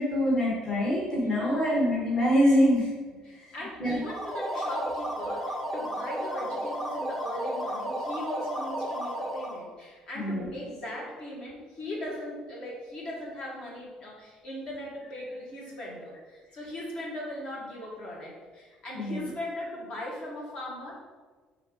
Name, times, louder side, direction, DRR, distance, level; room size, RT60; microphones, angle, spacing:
voice 1, 0.0-2.9 3.8-4.0 10.1-10.5 18.9-19.3, equal, 25° left, -6 dB, 1.4 m, -24 dB
voice 2, 1.2-1.6 3.2-21.0, left 1 dB, 45° left, -4 dB, 1.6 m, -39 dB
sound 1, 4.0-9.7, equal, 5° left, 0.6 m, -33 dB
5.6 x 3.6 x 5.1 m, 1.4 s
cardioid pair, 165°, 2 cm